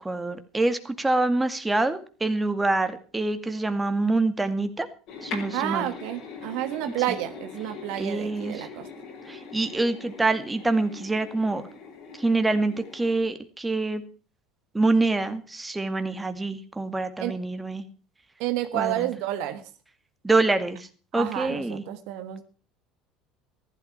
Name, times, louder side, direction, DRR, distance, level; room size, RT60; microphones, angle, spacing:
voice 1, 0.0-4.9 5.2-5.9 7.1-7.2 8.0-8.7 9.3-11.6 12.2-14.0 14.7-17.8 18.7-19.1 20.2-20.9 21.1-21.8, right 2 dB, 15° right, 8 dB, 2.1 m, -26 dB
sound 1, 5.1-13.2, left 5 dB, 60° left, 5.8 m, -42 dB
voice 2, 5.5-8.9 17.2-17.4 18.4-19.6 21.1-22.4, right 13 dB, 70° right, 9 dB, 1.5 m, -30 dB
14.5 x 12.0 x 5.9 m, 0.38 s
hypercardioid pair, 75°, 0 cm